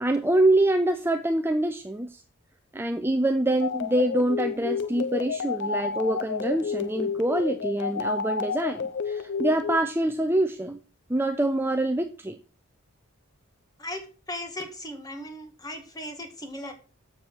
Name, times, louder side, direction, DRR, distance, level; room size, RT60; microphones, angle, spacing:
voice 1, 0.0-2.2 2.7-10.8 11.1-12.4, right 1 dB, 10° right, 6 dB, 0.5 m, -25 dB
sound 1, 3.6-9.8, left 5 dB, 55° left, 0.5 m, -30 dB
voice 2, 14.3-16.7, left 1 dB, 15° left, 6 dB, 1.7 m, -37 dB
7.2 x 7.0 x 6.4 m, 0.36 s
head